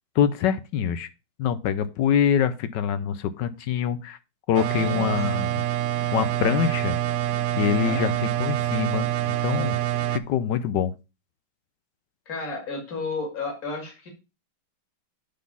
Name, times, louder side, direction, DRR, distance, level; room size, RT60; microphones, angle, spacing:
voice 1, 0.2-1.1 1.4-4.2 4.5-5.5 6.1-7.0 7.6-9.8 10.1-10.9, left 9 dB, 75° left, 13 dB, 1.1 m, -25 dB
sound 1, 4.5-10.2, right 13 dB, 80° right, 0.9 m, -26 dB
voice 2, 4.7-5.3 7.8-8.2 12.3-14.1, left 3 dB, 45° left, 2 dB, 2.5 m, -33 dB
8.4 x 4.0 x 5.4 m, 0.28 s
omnidirectional pair, 2.3 m